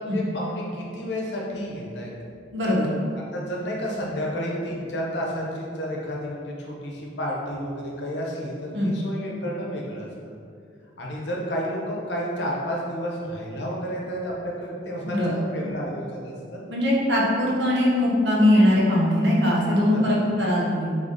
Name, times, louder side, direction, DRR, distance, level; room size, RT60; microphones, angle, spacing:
voice 1, 0.0-2.1 3.3-10.1 11.0-16.6 19.9-20.0, equal, 65° left, -3 dB, 0.8 m, -31 dB
voice 2, 2.5-2.9 8.7-8.9 15.0-15.3 16.7-21.0, left 1 dB, 60° right, -4 dB, 0.9 m, -21 dB
3.7 x 3.4 x 3.9 m, 2.3 s
head